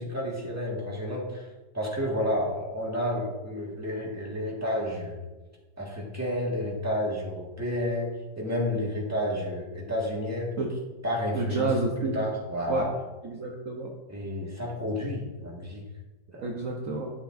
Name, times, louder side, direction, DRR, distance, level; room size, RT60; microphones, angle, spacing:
voice 1, 0.0-1.5 1.7-5.2 5.8-8.1 8.4-10.5 11.0-12.9 14.1-15.8 16.3-16.5, left 1 dB, 10° right, -3 dB, 1.6 m, -31 dB
voice 2, 11.3-12.2 12.7-12.9 13.2-13.9 16.4-17.1, right 3 dB, 55° right, 0 dB, 1.1 m, -29 dB
11.5 x 6.6 x 2.6 m, 1.2 s
omnidirectional pair, 1.9 m